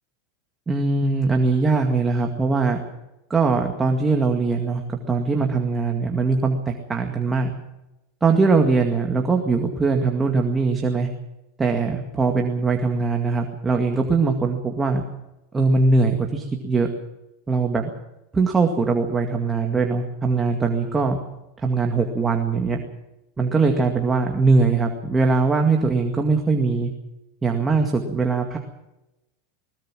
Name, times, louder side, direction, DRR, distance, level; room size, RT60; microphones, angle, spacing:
voice 1, 0.7-2.8 3.3-7.5 8.2-11.1 11.6-15.0 15.5-16.9 17.5-17.9 18.3-21.2 21.6-22.8 23.4-26.9 27.4-28.6, right 4 dB, 10° right, 2 dB, 2.1 m, -21 dB
21.5 x 20.5 x 6.3 m, 0.94 s
supercardioid pair, 160°, 0 cm